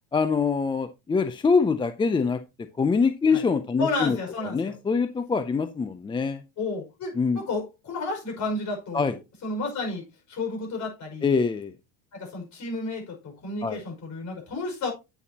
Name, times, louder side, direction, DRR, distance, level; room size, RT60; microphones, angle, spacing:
voice 1, 0.1-4.2 4.5-6.4 7.2-7.4 8.9-9.1 11.2-11.7 13.6-13.8, left 5 dB, 10° left, 0.4 m, -24 dB
voice 2, 3.8-4.8 6.6-11.3 12.1-14.9, left 3 dB, 45° left, 5.4 m, -32 dB
9.2 x 8.2 x 2.8 m
supercardioid pair, 115°, 41 cm